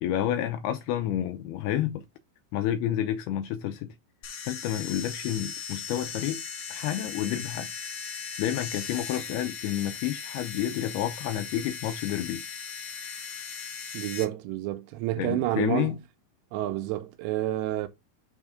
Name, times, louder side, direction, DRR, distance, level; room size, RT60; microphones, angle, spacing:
voice 1, 0.0-2.0 2.5-3.9 4.5-6.4 6.7-7.7 8.4-12.4 15.2-16.0, left 11 dB, 80° left, 2.3 m, -29 dB
sound 1, 4.2-14.2, left 6 dB, 60° left, 1.8 m, -38 dB
voice 2, 13.9-15.9 16.5-17.9, right 14 dB, 85° right, 2.8 m, -29 dB
6.3 x 3.6 x 4.9 m
omnidirectional pair, 5.1 m